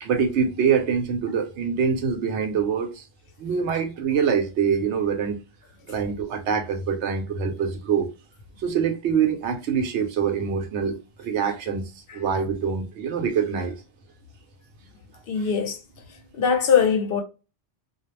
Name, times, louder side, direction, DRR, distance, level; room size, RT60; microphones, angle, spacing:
voice 1, 0.0-3.0 3.4-5.4 5.9-8.1 8.6-11.8 12.1-13.8, right 6 dB, 80° right, 0.9 m, -24 dB
voice 2, 15.3-15.8 16.1-17.2, left 7 dB, 60° left, 0.8 m, -22 dB
2.3 x 2.0 x 3.0 m
omnidirectional pair, 1.2 m